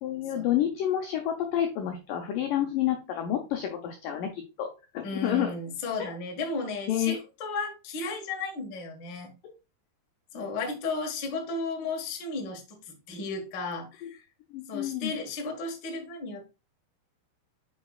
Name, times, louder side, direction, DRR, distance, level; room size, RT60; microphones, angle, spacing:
voice 1, 0.0-4.7 4.9-5.5 6.9-7.2 9.4-9.5 14.0-14.1 14.5-15.1, left 11 dB, 80° left, 4 dB, 1.9 m, -29 dB
voice 2, 5.0-9.3 10.3-14.2 14.7-16.5, left 3 dB, 60° left, 2 dB, 1.2 m, -34 dB
9.4 x 5.2 x 2.4 m, 0.29 s
omnidirectional pair, 4.9 m